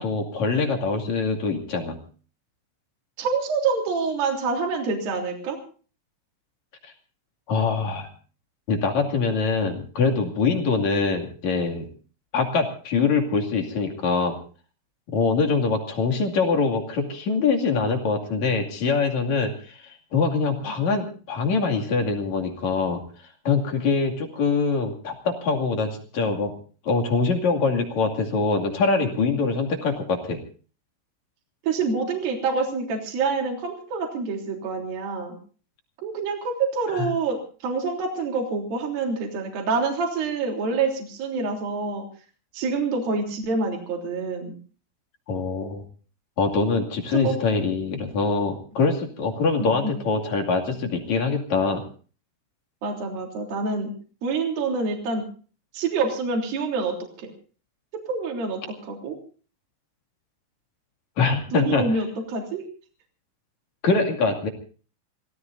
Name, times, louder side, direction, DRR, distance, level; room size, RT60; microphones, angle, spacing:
voice 1, 0.0-2.0 6.8-6.9 7.5-8.1 8.7-11.9 12.3-14.4 15.1-23.0 23.4-26.5 26.8-30.4 36.9-37.1 45.3-45.8 46.4-51.8 61.2-62.0 63.8-64.5, left 4 dB, 45° left, 3 dB, 3.0 m, -24 dB
voice 2, 3.2-5.6 31.6-35.4 36.0-42.0 42.5-44.5 47.1-47.3 49.6-49.9 52.8-53.9 54.2-55.2 55.7-57.3 58.1-59.1 61.5-62.6, right 4 dB, 50° right, 1 dB, 4.7 m, -26 dB
28.0 x 17.5 x 2.6 m, 0.39 s
omnidirectional pair, 5.7 m